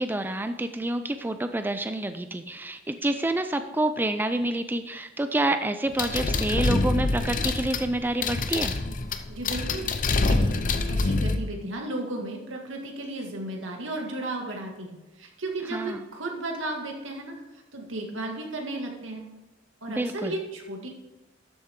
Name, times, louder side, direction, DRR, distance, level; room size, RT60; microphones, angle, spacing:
voice 1, 0.0-8.7 15.7-16.0 19.9-20.4, right 1 dB, 10° right, 8 dB, 0.4 m, -28 dB
sound 1, 6.0-11.4, left 3 dB, 45° left, 0.7 m, -26 dB
voice 2, 9.3-9.9 10.2-10.6 10.9-17.3 17.7-19.3 19.8-20.9, right 2 dB, 80° right, 1 dB, 2.1 m, -34 dB
12.5 x 7.7 x 3.7 m, 1.1 s
head